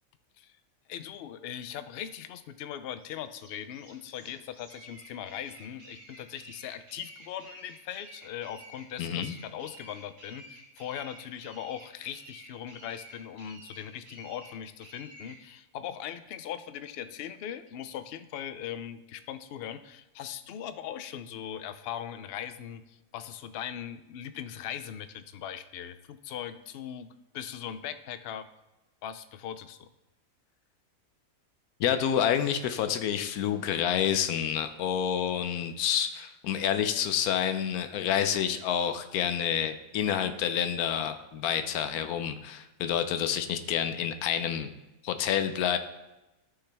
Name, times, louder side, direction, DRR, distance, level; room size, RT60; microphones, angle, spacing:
voice 1, 0.9-27.1 27.3-28.4 29.0-29.9, left 10 dB, 65° left, 11 dB, 0.6 m, -40 dB
sound 1, 3.0-15.4, right 1 dB, 45° right, 2.2 m, -51 dB
voice 2, 9.0-9.3 31.8-44.7 45.0-45.8, left 9 dB, 90° left, 9 dB, 1.1 m, -28 dB
13.0 x 5.7 x 3.4 m, 0.99 s
omnidirectional pair, 1.5 m